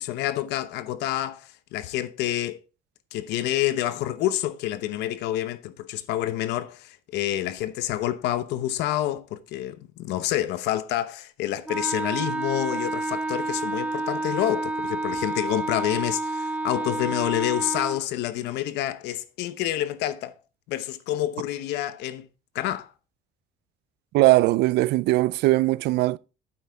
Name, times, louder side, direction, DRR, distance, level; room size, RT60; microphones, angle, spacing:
voice 1, 0.0-2.6 3.1-20.3 20.7-22.2 22.5-22.9, left 13 dB, 90° left, 1.0 m, -28 dB
Wind instrument woodwind instrument, 11.7-18.0, right 2 dB, 10° right, 0.4 m, -29 dB
voice 2, 24.1-26.2, right 18 dB, 80° right, 0.5 m, -20 dB
8.9 x 7.8 x 3.5 m
cardioid pair, 110°, 17 cm